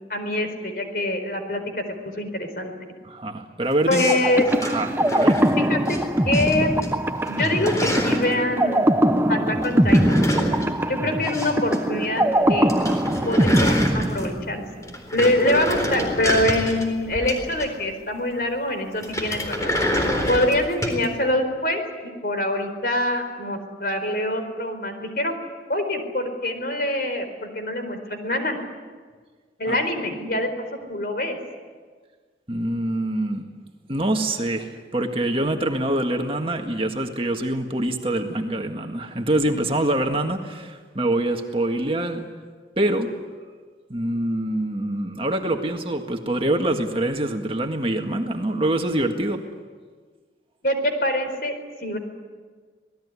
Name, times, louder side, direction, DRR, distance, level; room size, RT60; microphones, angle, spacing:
voice 1, 0.1-1.8 2.2-2.7 3.9-4.5 5.6-6.0 6.2-6.8 7.2-8.9 9.3-10.2 10.9-12.7 13.2-19.8 20.3-25.3 25.7-28.6 29.6-30.5 30.9-31.4 50.6-51.6 51.8-52.0, left 1 dB, 55° left, 7 dB, 4.4 m, -25 dB
voice 2, 3.0-4.0 4.6-5.4 29.7-29.8 32.5-33.4 33.9-42.3 42.8-43.1 43.9-49.4, right 1 dB, 30° right, 4 dB, 1.8 m, -25 dB
sound 1, 3.9-6.0 6.3-6.9 7.1-8.3 9.6-11.8 12.0-12.1 12.4-12.5 12.7-14.4 14.8-17.9 19.0-21.0, equal, 20° left, 4.0 m, -28 dB
sound 2, 4.1-14.8, right 1 dB, 15° right, 0.9 m, -22 dB
27.0 x 19.0 x 9.8 m, 1.5 s
head